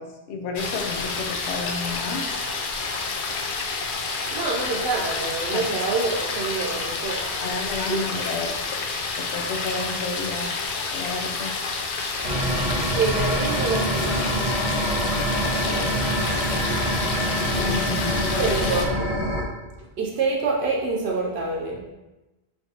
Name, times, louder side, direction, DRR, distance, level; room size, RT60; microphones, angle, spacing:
voice 1, 0.0-2.2 5.5-5.7 7.4-8.5 9.2-10.5 10.9-11.6 15.4-16.0 17.5-18.2, left 4 dB, 85° left, 3 dB, 0.9 m, -31 dB
sound 1, 0.6-18.9, left 4 dB, 60° left, 0.6 m, -29 dB
voice 2, 4.3-7.5 7.9-8.0 12.5-14.1 18.4-19.5 20.0-21.8, right 4 dB, 75° right, -1 dB, 0.9 m, -27 dB
sound 2, 12.2-19.4, equal, 35° right, 0.8 m, -25 dB
4.5 x 3.3 x 2.7 m, 1.0 s
omnidirectional pair, 1.1 m